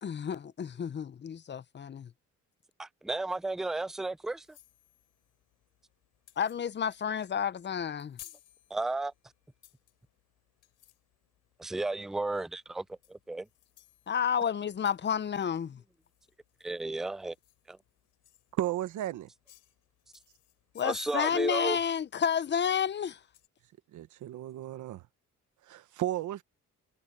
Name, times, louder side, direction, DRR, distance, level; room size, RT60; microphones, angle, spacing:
voice 1, 0.0-2.1 6.4-8.2 14.1-15.8 20.7-23.2, left 7 dB, 35° left, 0.8 m, -30 dB
voice 2, 2.8-4.5 8.7-9.1 11.6-13.5 16.6-17.4 17.7-17.8 20.8-21.8, right 2 dB, ahead, 0.4 m, -33 dB
sound 1, 4.0-23.5, left 14 dB, 90° left, 3.3 m, -61 dB
voice 3, 18.6-19.3 23.9-25.0 25.7-26.4, right 13 dB, 80° right, 1.3 m, -34 dB
cardioid pair, 90°, 30 cm